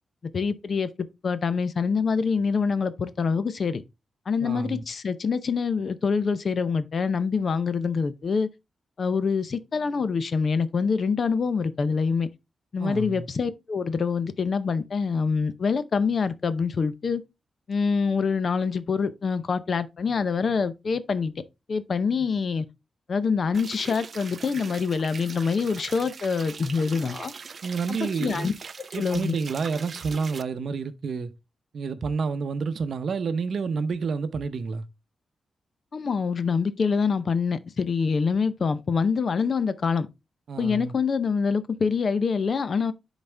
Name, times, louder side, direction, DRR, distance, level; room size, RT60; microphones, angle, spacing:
voice 1, 0.3-0.9 1.2-3.8 4.3-8.5 9.0-12.3 12.7-17.2 17.7-21.3 21.7-22.7 23.1-27.3 27.9-28.5 28.9-29.4 35.9-40.1 40.6-42.9, left 5 dB, 45° left, 0.6 m, -25 dB
voice 2, 4.4-4.8 12.8-13.3 27.6-28.5 28.9-31.3 31.7-34.8 40.5-40.9, right 5 dB, 60° right, 0.7 m, -29 dB
sound 1, 23.5-30.4, right 5 dB, 45° right, 0.3 m, -41 dB
10.5 x 4.1 x 3.3 m
wide cardioid pair, 160°, 0 cm